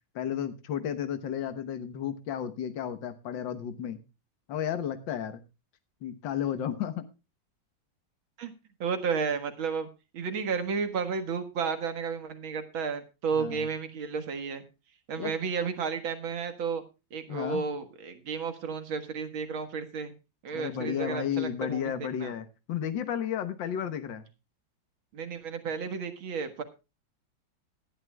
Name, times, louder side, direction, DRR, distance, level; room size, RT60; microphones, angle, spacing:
voice 1, 0.2-4.0 4.5-5.4 6.0-7.1 13.3-13.7 15.2-15.3 17.3-17.6 20.5-24.3, left 9 dB, 70° left, 10 dB, 1.8 m, -33 dB
voice 2, 8.8-9.9 10.1-14.6 15.1-16.8 17.1-20.1 20.4-22.3 25.1-26.6, right 5 dB, 85° right, 9 dB, 2.4 m, -32 dB
18.5 x 11.5 x 2.3 m, 0.28 s
omnidirectional pair, 2.1 m